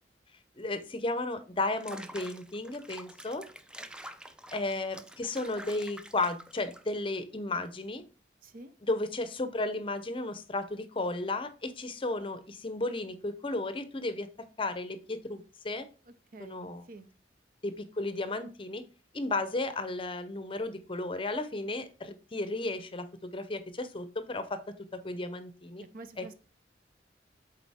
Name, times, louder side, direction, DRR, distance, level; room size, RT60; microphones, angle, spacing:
voice 1, 0.6-3.4 4.5-8.0 8.9-14.3 14.6-15.9 16.4-16.8 17.6-18.8 19.1-25.8 26.2-26.3, left 2 dB, 30° left, 12 dB, 0.6 m, -34 dB
Water / Bathtub (filling or washing), 1.7-7.2, right 1 dB, 5° right, 0.4 m, -48 dB
voice 2, 8.4-8.7 16.1-17.1 25.9-26.3, right 2 dB, 50° right, 10 dB, 0.6 m, -48 dB
8.3 x 4.0 x 3.5 m, 0.35 s
head